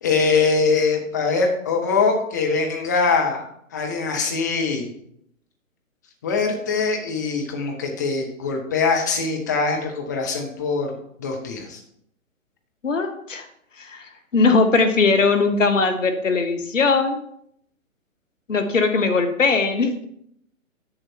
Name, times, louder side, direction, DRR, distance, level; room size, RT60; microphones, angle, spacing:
voice 1, 0.0-4.9 6.2-10.9 11.2-11.8, left 4 dB, 15° left, 2 dB, 0.6 m, -22 dB
voice 2, 12.8-13.5 13.8-17.2 18.5-19.9, left 4 dB, 65° left, 7 dB, 1.1 m, -20 dB
8.0 x 7.0 x 4.3 m, 0.72 s
figure-of-eight pair, 130°, 41 cm